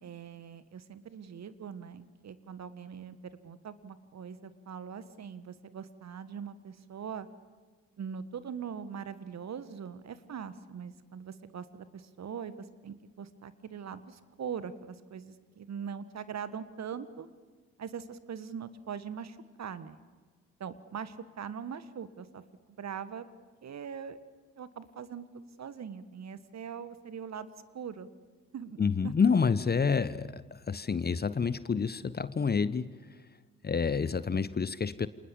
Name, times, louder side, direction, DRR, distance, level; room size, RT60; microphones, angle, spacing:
voice 1, 0.0-3.2 3.4-7.3 8.0-12.5 12.8-17.3 17.8-20.0 20.6-22.4 22.8-23.3 23.6-24.2 24.6-27.5 27.7-28.1 28.5-29.1, right 7 dB, 45° right, 14 dB, 1.6 m, -41 dB
voice 2, 28.8-32.9 33.6-35.1, left 5 dB, 25° left, 17 dB, 0.9 m, -28 dB
29.0 x 26.5 x 7.2 m, 1.4 s
figure-of-eight pair, 40°, 38 cm